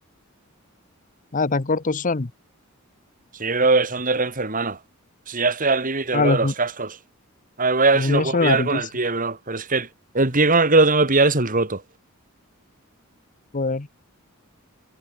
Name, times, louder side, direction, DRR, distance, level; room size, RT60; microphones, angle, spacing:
voice 1, 1.3-2.3 6.1-6.5 7.9-8.9 13.5-13.9, left 3 dB, 40° left, 0.9 m, -22 dB
voice 2, 3.4-4.8 5.3-7.0 7.6-9.9 10.1-11.8, right 3 dB, 40° right, 3.5 m, -20 dB
head